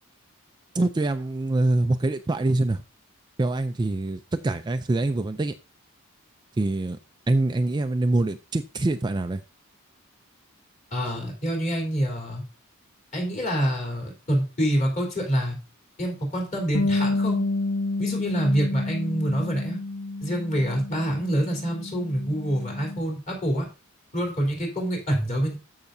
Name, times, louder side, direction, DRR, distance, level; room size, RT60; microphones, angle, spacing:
voice 1, 0.7-2.8 3.4-5.5 6.6-7.0 7.3-9.4, right 2 dB, 20° right, 9 dB, 0.3 m, -24 dB
voice 2, 10.9-12.4 13.1-15.6 16.0-17.4 18.0-19.8 20.2-23.7 24.1-25.6, equal, 35° left, -1 dB, 3.6 m, -26 dB
Bass guitar, 16.7-23.0, left 2 dB, 75° left, 0.6 m, -29 dB
13.5 x 5.8 x 2.6 m, 0.32 s
head